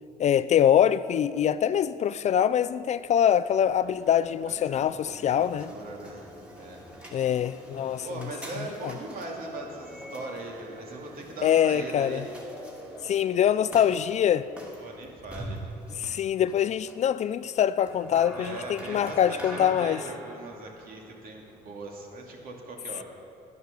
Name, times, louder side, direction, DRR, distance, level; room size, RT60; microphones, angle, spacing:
voice 1, 0.2-5.7 7.1-8.3 8.6-8.9 11.4-12.2 13.0-14.5 16.0-20.0, left 9 dB, 45° left, 0.4 m, -24 dB
sound 1, 3.4-22.5, equal, 5° right, 2.3 m, -44 dB
voice 2, 4.5-4.8 5.1-6.3 6.5-6.8 8.0-12.2 14.8-15.7 18.3-23.0, right 2 dB, 60° right, 2.4 m, -40 dB
11.0 x 10.5 x 6.7 m
cardioid pair, 110°, 17 cm